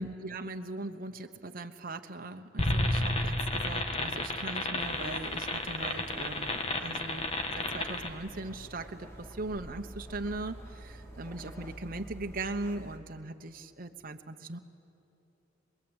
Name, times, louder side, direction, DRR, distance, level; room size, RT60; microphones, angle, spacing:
voice 1, 0.0-14.6, right 2 dB, 50° right, 6 dB, 1.0 m, -39 dB
sound 1, 2.6-8.1, left 2 dB, 30° left, 1.6 m, -31 dB
sound 2, 4.8-13.0, right 1 dB, 15° left, 2.8 m, -48 dB
26.0 x 21.0 x 9.0 m, 2.9 s
head